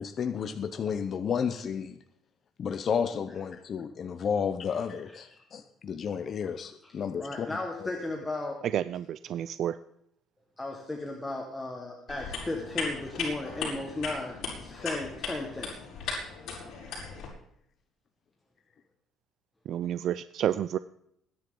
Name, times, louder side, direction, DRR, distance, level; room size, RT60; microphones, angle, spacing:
voice 1, 0.0-2.0 2.6-7.6, left 7 dB, 35° left, 8 dB, 0.7 m, -32 dB
voice 2, 5.1-5.4 6.8-6.9 7.2-8.6 10.6-15.8, left 2 dB, 10° left, 0 dB, 1.6 m, -35 dB
voice 3, 8.7-9.8 19.7-20.8, right 10 dB, 50° right, 14 dB, 0.4 m, -30 dB
sound 1, 12.1-17.3, left 5 dB, 60° left, 5.7 m, -37 dB
21.5 x 10.0 x 3.9 m, 0.75 s
cardioid pair, 155°, 0 cm